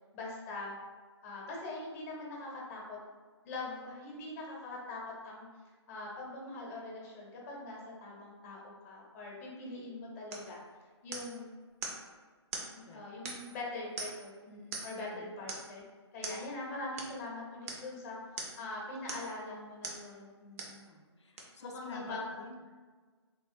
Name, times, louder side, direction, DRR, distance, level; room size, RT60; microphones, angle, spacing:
voice 1, 0.1-0.7 1.2-3.0 3.4-5.5 5.9-10.6 11.0-11.6 12.7-15.8 16.1-20.9 21.6-22.2, left 2 dB, 30° left, -3 dB, 0.7 m, -43 dB
sound 1, 10.3-10.5 11.1-11.4 11.8-12.0 12.5-12.7 13.3-13.6 14.0-14.3 14.7-15.0 15.5-15.7 16.2-16.4 17.0-17.1 17.7-17.9 18.4-18.6 19.1-19.4 19.8-20.0 20.6-20.8 21.4-21.5, right 3 dB, 30° right, 0.4 m, -41 dB
voice 2, 20.8-22.7, left 2 dB, 75° left, 3 dB, 0.4 m, -49 dB
3.0 x 2.3 x 2.5 m, 1.4 s
figure-of-eight pair, 140°, 15 cm